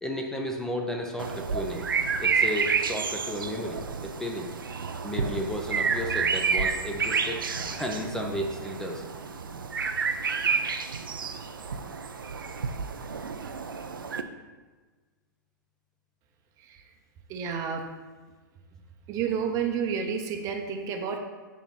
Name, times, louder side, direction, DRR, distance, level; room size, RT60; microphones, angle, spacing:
voice 1, 0.0-1.9 2.2-4.5 5.0-7.4 7.7-9.0, equal, 5° left, 1 dB, 0.6 m, -33 dB
sound 1, 1.2-14.2, right 5 dB, 85° right, 0.4 m, -30 dB
voice 2, 16.6-16.9 17.3-17.9 19.1-21.2, right 6 dB, 30° right, 3 dB, 0.7 m, -30 dB
6.8 x 3.0 x 5.6 m, 1.3 s
hypercardioid pair, 110°, 11 cm